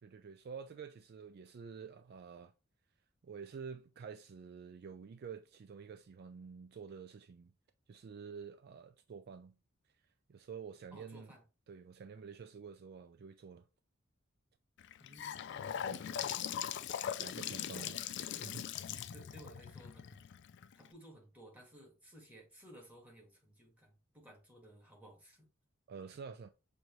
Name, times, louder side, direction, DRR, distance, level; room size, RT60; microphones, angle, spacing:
voice 1, 0.0-2.5 3.2-7.5 7.9-9.6 9.8-9.9 10.3-11.3 11.7-13.6 15.8-16.3 17.2-18.0 18.4-18.7 25.9-26.5, right 6 dB, 50° right, 0.3 m, -49 dB
voice 2, 10.9-11.4 15.0-16.5 17.3-17.9 18.3-18.4 18.9-20.2 20.7-25.4, equal, 10° right, 1.6 m, -57 dB
Gurgling / Sink (filling or washing) / Bathtub (filling or washing), 14.8-20.9, left 9 dB, 55° left, 0.3 m, -40 dB
6.1 x 2.7 x 3.0 m
head